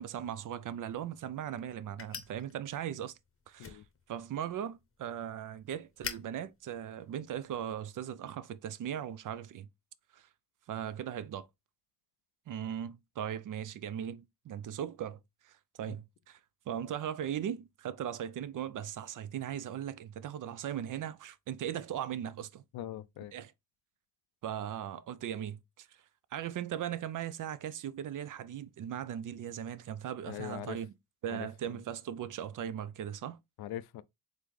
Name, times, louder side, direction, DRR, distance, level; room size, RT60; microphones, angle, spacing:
voice 1, 0.0-3.2 3.5-3.8 4.1-9.7 10.1-10.2 10.7-11.5 12.5-15.2 15.4-16.4 16.7-22.6 23.3-23.5 24.4-25.9 26.3-30.9 31.2-33.4, right 9 dB, 55° right, 0.5 m, -38 dB
sound 1, 0.6-7.8, left 6 dB, 35° left, 0.8 m, -49 dB
voice 2, 22.7-23.3 30.3-30.8 31.3-31.8 33.6-34.0, left 12 dB, 70° left, 0.5 m, -42 dB
3.9 x 3.5 x 3.2 m
cardioid pair, 80°, 38 cm